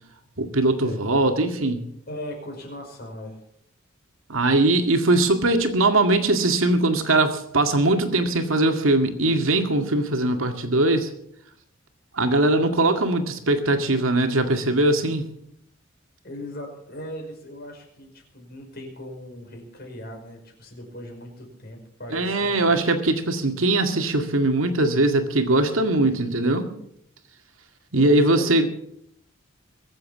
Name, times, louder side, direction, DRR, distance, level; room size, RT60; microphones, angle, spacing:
voice 1, 0.4-1.8 4.3-11.1 12.1-15.3 22.1-26.7 27.9-28.7, right 2 dB, 85° right, 6 dB, 2.1 m, -21 dB
voice 2, 2.1-3.4 16.2-22.8 27.9-28.5, left 1 dB, 50° left, 1 dB, 5.6 m, -38 dB
23.0 x 7.8 x 7.3 m, 0.71 s
head